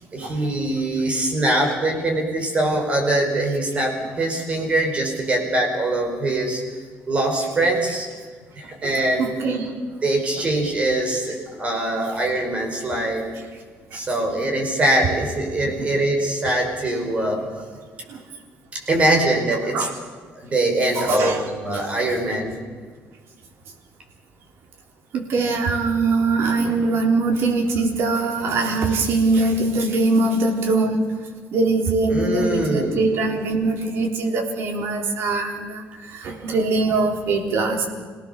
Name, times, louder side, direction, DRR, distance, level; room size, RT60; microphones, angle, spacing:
voice 1, 0.1-6.6 7.1-8.1 8.6-9.4 10.0-13.2 13.9-17.4 18.7-19.9 20.3-22.6 32.1-33.1, right 1 dB, 25° right, 2 dB, 5.2 m, -23 dB
voice 2, 9.2-9.7 13.9-14.0 15.6-15.9 18.1-18.2 19.7-19.9 21.0-21.8 25.1-31.1 31.5-37.9, right 3 dB, 60° right, 2 dB, 4.0 m, -22 dB
27.0 x 18.5 x 7.0 m, 1.5 s
cardioid pair, 160°, 5 cm